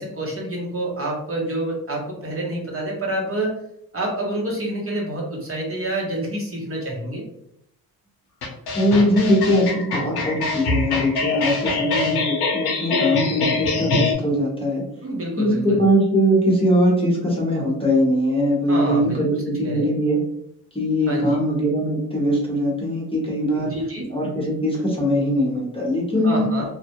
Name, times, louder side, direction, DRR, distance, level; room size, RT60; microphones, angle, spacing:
voice 1, 0.0-3.6 3.9-7.2 11.7-12.2 15.0-15.8 18.7-19.4 19.6-19.9 21.1-21.4 23.5-24.0 26.2-26.6, right 1 dB, 35° right, -2 dB, 0.8 m, -28 dB
sound 1, 8.4-14.1, left 4 dB, 85° left, 0.8 m, -24 dB
voice 2, 8.7-14.8 15.4-20.2 20.7-23.7 24.1-26.5, equal, 15° left, -3 dB, 0.9 m, -21 dB
2.3 x 2.0 x 2.9 m, 0.76 s
cardioid pair, 75°, 37 cm